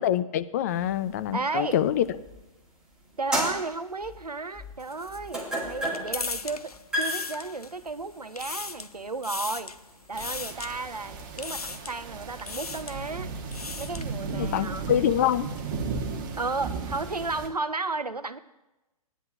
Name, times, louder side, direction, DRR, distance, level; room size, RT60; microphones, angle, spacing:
voice 1, 0.0-2.0 14.3-15.5, left 10 dB, 25° left, 13 dB, 0.4 m, -25 dB
sound 1, 0.8-2.6 3.1-11.6, equal, 5° right, 2.0 m, -35 dB
voice 2, 1.3-1.8 3.2-9.7 10.1-13.3 13.8-14.9 16.4-18.4, right 3 dB, 85° right, 13 dB, 0.7 m, -33 dB
sound 2, 4.8-7.9 8.2-8.9 9.2-9.8 10.2-10.7 11.4-12.0 12.4-13.0 13.4-14.1, left 4 dB, 75° left, 0.7 m, -37 dB
sound 3, 10.1-17.5, right 4 dB, 35° right, 1.2 m, -35 dB
17.5 x 10.0 x 2.4 m, 0.99 s
figure-of-eight pair, 120°, 19 cm